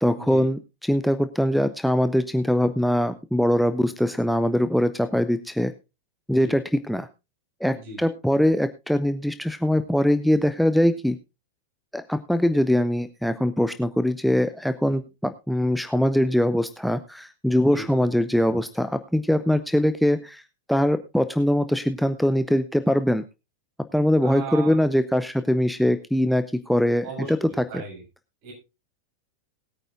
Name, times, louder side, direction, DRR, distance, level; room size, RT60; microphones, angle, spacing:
voice 1, 0.0-5.7 6.3-7.1 7.6-11.2 11.9-20.4 20.7-23.2 23.9-27.7, equal, ahead, 11 dB, 0.6 m, -22 dB
voice 2, 17.7-18.0 24.2-24.8 27.0-28.0 28.4-28.5, right 5 dB, 50° right, 1 dB, 6.7 m, -36 dB
20.0 x 9.2 x 2.5 m, 0.26 s
figure-of-eight pair, 90°, 0 cm